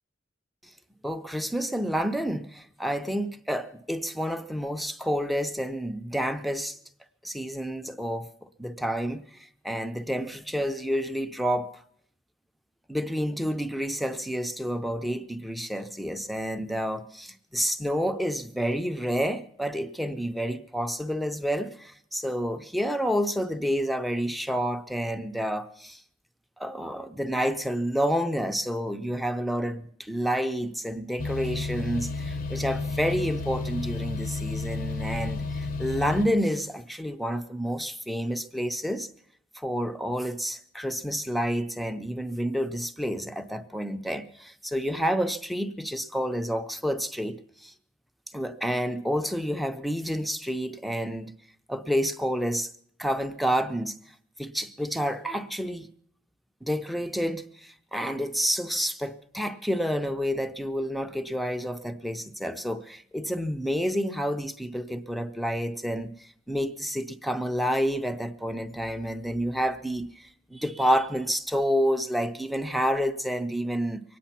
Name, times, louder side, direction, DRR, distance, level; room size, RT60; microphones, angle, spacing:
voice 1, 1.0-6.8 7.2-8.3 8.6-9.3 9.6-11.7 12.9-26.0 26.6-39.1 39.6-47.7 48.3-51.3 51.7-52.7 53.0-53.9 54.4-55.9 56.6-74.0, equal, ahead, 0.6 m, -29 dB
sound 1, 31.2-36.3, left 3 dB, 45° left, 0.7 m, -31 dB
23.0 x 9.2 x 5.8 m
head